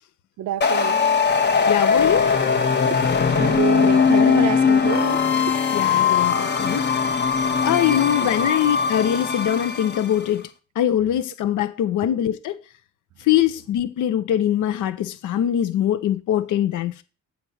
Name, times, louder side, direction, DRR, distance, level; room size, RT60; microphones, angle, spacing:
voice 1, 0.4-1.0 3.3-5.2 7.9-8.5, right 14 dB, 65° right, 0.5 m, -28 dB
sound 1, 0.6-10.2, left 6 dB, 35° left, 0.9 m, -20 dB
voice 2, 1.7-2.3 5.7-6.8 7.6-10.5 10.8-12.6 13.3-17.0, left 11 dB, 80° left, 0.7 m, -22 dB
7.8 x 4.3 x 5.7 m
cardioid pair, 90°, 30 cm